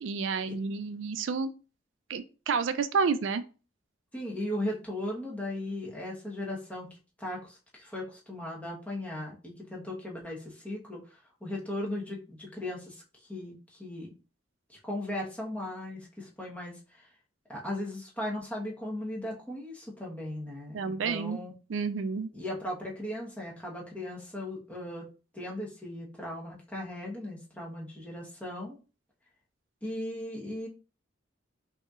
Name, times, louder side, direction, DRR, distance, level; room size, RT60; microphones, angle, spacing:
voice 1, 0.0-1.5 2.1-3.4 20.7-21.4 21.7-22.3, right 5 dB, 75° right, 12 dB, 0.4 m, -30 dB
voice 2, 4.1-6.9 7.2-11.0 11.4-13.0 13.3-14.1 14.8-17.1 17.5-21.5 22.3-25.1 25.3-28.8 29.8-30.7, left 1 dB, 10° left, -3 dB, 1.1 m, -37 dB
5.4 x 2.8 x 2.4 m, 0.33 s
head